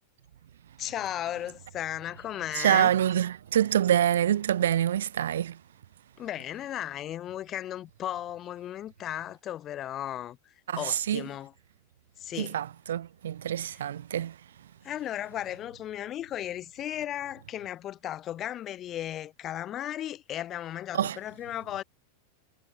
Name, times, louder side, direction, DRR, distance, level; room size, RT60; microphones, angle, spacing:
voice 1, 0.8-2.9 6.2-11.5 12.2-12.6 14.8-21.8, left 12 dB, 30° left, 2.3 m, -35 dB
voice 2, 2.5-5.6 10.7-11.3 12.4-14.7 20.9-21.2, right 10 dB, 60° right, 1.5 m, -26 dB
figure-of-eight pair, 90°, 0 cm